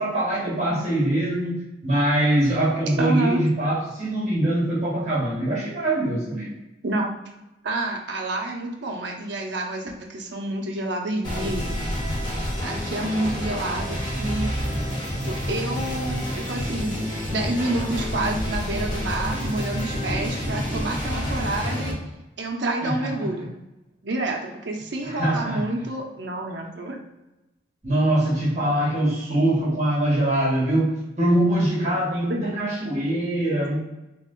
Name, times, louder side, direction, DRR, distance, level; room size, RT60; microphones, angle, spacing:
voice 1, 0.0-6.5 22.8-23.3 25.0-25.6 27.8-33.8, right 1 dB, 40° right, -7 dB, 1.2 m, -23 dB
voice 2, 3.0-3.4 6.8-7.1 7.6-11.8 12.6-14.5 15.3-17.0 17.3-22.0 22.4-23.5 24.0-27.0 32.3-32.4, right 2 dB, 70° right, 1 dB, 0.7 m, -28 dB
sound 1, 11.2-21.9, equal, 25° left, 1.3 m, -28 dB
3.2 x 3.0 x 3.7 m, 0.99 s
head